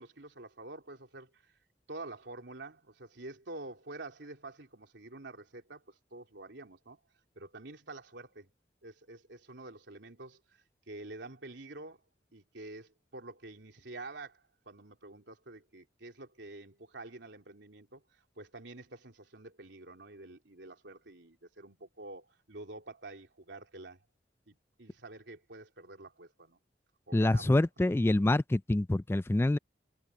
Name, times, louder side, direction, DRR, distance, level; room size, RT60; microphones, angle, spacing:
voice 1, 0.0-1.5 1.9-7.0 7.3-8.5 8.8-12.0 12.3-24.0 24.5-26.6 27.1-27.6, right 2 dB, 85° right, 3.2 m, -48 dB
voice 2, 27.1-29.6, left 1 dB, 15° left, 0.3 m, -26 dB
head